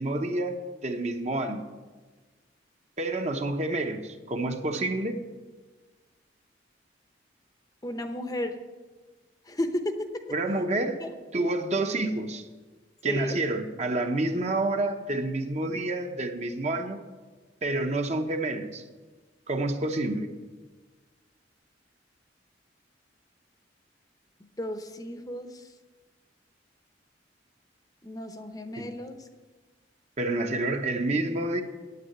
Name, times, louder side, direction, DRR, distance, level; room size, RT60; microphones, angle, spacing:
voice 1, 0.0-1.7 3.0-5.2 10.3-11.0 11.3-12.4 13.0-17.0 17.6-18.8 19.5-20.3 28.8-28.9 30.2-31.6, right 2 dB, 35° right, 5 dB, 0.9 m, -28 dB
voice 2, 7.8-8.5 9.5-10.2 11.0-11.1 13.0-13.4 24.6-25.5 28.0-29.2, left 1 dB, 20° left, 7 dB, 0.8 m, -33 dB
9.5 x 8.4 x 9.4 m, 1.3 s
head